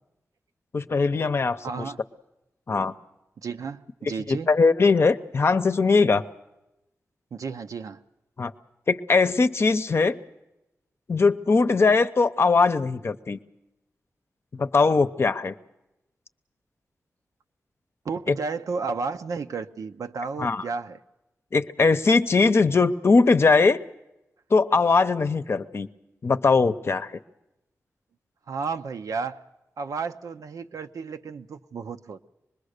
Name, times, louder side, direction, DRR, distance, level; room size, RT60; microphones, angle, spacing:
voice 1, 0.7-1.9 2.7-2.9 4.3-6.2 8.4-8.5 8.9-10.2 11.1-13.4 14.5-15.5 18.3-18.4 20.4-20.6 21.5-23.8 24.5-25.9 26.2-27.1, left 4 dB, 50° left, 11 dB, 0.7 m, -20 dB
voice 2, 1.6-2.0 3.4-4.5 7.3-8.0 18.0-21.0 28.5-29.4 29.8-32.3, right 5 dB, 85° right, 8 dB, 0.7 m, -32 dB
25.5 x 21.0 x 6.6 m, 0.94 s
wide cardioid pair, 100°, 6 cm